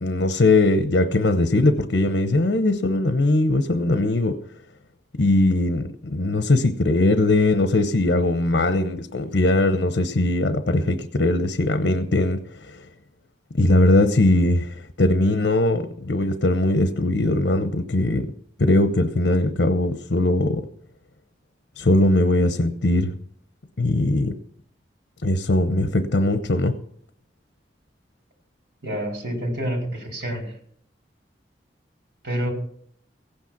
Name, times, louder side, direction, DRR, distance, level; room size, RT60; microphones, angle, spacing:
voice 1, 0.0-4.4 5.1-12.8 13.5-18.3 18.6-20.7 21.8-23.1 23.8-24.4 25.2-26.8, left 2 dB, 75° left, 9 dB, 0.9 m, -20 dB
voice 2, 28.8-30.5 32.2-32.5, right 1 dB, 75° right, 1 dB, 4.8 m, -28 dB
16.0 x 9.0 x 6.0 m, 0.62 s
head